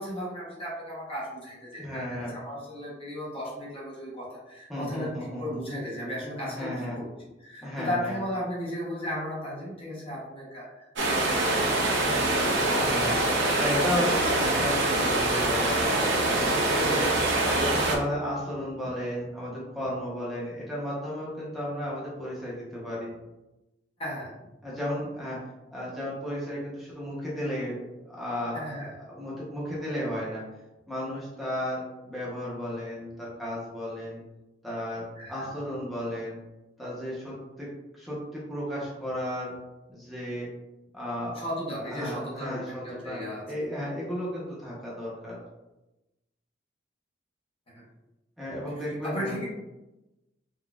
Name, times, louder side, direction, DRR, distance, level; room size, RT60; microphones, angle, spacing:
voice 1, 0.0-5.1 5.4-7.1 7.4-10.9 11.5-13.4 13.7-14.3 24.0-24.3 28.5-28.9 35.2-35.4 41.3-43.4 47.7-47.8 48.8-49.5, equal, 30° left, -5 dB, 0.8 m, -35 dB
voice 2, 1.8-2.3 4.7-5.6 6.4-7.0 7.6-8.2 12.7-13.2 13.6-23.1 24.6-25.4 25.7-28.8 29.2-30.4 30.9-34.2 34.6-36.4 36.8-37.7 38.0-39.6 39.9-40.5 40.9-41.4 41.9-43.2 43.5-45.4 48.4-49.4, equal, ahead, -7 dB, 0.7 m, -34 dB
sound 1, 11.0-18.0, right 2 dB, 80° right, 0.6 m, -24 dB
4.0 x 2.2 x 2.3 m, 1.0 s
head